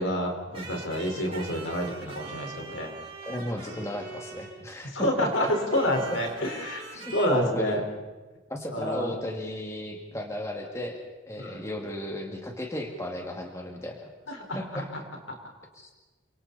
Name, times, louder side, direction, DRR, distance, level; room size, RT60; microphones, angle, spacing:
voice 1, 0.0-2.9 4.9-7.8 8.7-9.1 11.4-11.6 14.3-14.8, equal, 70° left, 2 dB, 4.8 m, -28 dB
sound 1, 0.5-4.8 5.3-7.3, right 4 dB, 30° right, 5.2 m, -42 dB
voice 2, 3.2-5.3 6.9-7.9 8.5-11.0 11.3-14.1 14.6-14.9 15.7-15.9, left 1 dB, 15° left, 1 dB, 2.3 m, -35 dB
29.5 x 25.5 x 4.2 m, 1.2 s
head